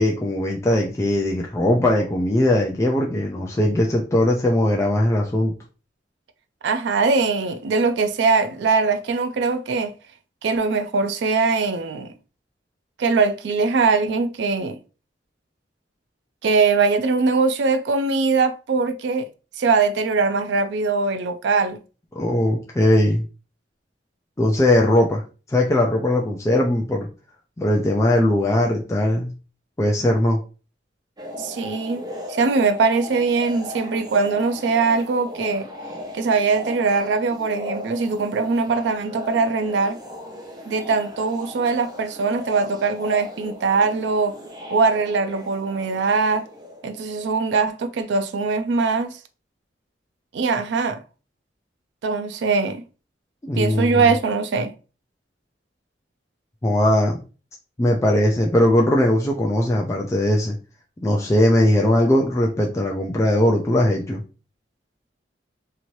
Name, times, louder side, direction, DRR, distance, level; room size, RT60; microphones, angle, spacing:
voice 1, 0.0-5.5 22.2-23.2 24.4-25.2 25.5-27.1 27.6-29.3 29.8-30.4 53.5-54.0 56.6-57.2 57.8-60.6 61.0-64.2, left 1 dB, 15° left, 0.4 m, -19 dB
voice 2, 6.6-9.9 10.4-12.1 13.0-14.8 16.4-19.3 19.6-21.8 31.4-35.7 36.1-40.0 40.7-44.4 44.7-46.5 46.8-49.2 50.3-51.0 52.0-52.8 53.6-54.7, right 4 dB, 70° right, 0.4 m, -21 dB
sound 1, 31.2-47.4, left 1 dB, 20° right, 0.7 m, -37 dB
2.9 x 2.6 x 3.0 m
head